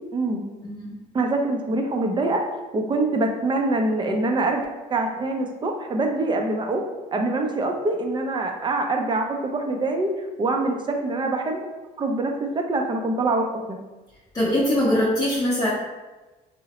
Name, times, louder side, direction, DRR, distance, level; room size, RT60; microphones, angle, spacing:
voice 1, 0.1-0.4 1.1-2.4 2.7-6.8 7.1-10.1 10.4-11.6 12.0-13.8, right 2 dB, 30° right, 3 dB, 0.4 m, -24 dB
voice 2, 0.6-1.0 14.3-15.7, left 1 dB, 20° left, -8 dB, 0.6 m, -22 dB
3.7 x 2.0 x 2.9 m, 1.2 s
cardioid pair, 110°, 17 cm